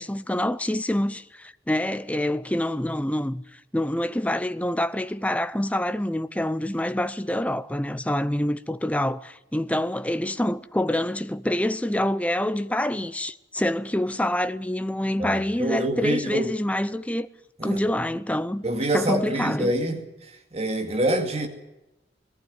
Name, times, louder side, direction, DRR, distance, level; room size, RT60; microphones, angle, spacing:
voice 1, 0.0-17.3 17.6-18.6 18.9-19.7, left 1 dB, 10° left, 0.6 m, -26 dB
voice 2, 15.2-16.5 17.6-18.0 18.6-20.0 20.5-21.5, right 1 dB, 35° right, 2.2 m, -26 dB
19.5 x 15.0 x 9.6 m
head